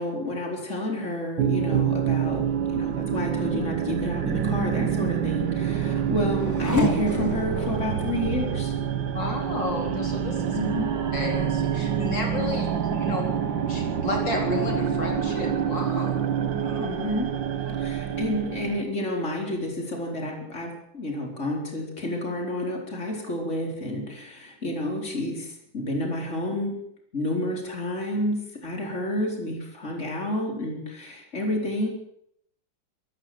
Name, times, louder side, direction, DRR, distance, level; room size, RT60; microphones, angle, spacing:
voice 1, 0.0-8.7 10.5-10.9 16.8-17.3 17.8-26.8 27.1-31.9, left 1 dB, 35° left, 0 dB, 5.0 m, -30 dB
sound 1, 1.4-18.8, right 9 dB, 70° right, 1.9 m, -27 dB
Race car auto racing / Accelerating revving vroom, 5.3-18.5 18.9-19.6, left 1 dB, 10° left, 2.4 m, -37 dB
voice 2, 9.1-10.6 11.1-13.4 13.7-16.2 16.6-16.9 17.7-17.8, left 2 dB, 65° left, 0 dB, 4.9 m, -32 dB
26.5 x 14.0 x 7.8 m, 0.74 s
omnidirectional pair, 2.1 m